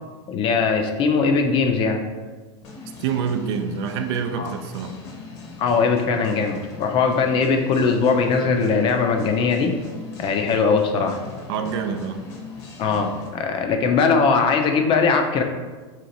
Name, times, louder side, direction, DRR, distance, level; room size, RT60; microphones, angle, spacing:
voice 1, 0.3-2.0 4.4-4.5 5.6-9.7 10.2-11.2 12.8-15.4, left 5 dB, 35° left, 5 dB, 0.4 m, -20 dB
sound 1, 2.6-13.4, left 3 dB, 65° left, 0.8 m, -40 dB
voice 2, 3.0-4.9 11.5-12.2, right 6 dB, 65° right, 6 dB, 0.4 m, -26 dB
2.9 x 2.4 x 3.8 m, 1.3 s
supercardioid pair, 120°, 15 cm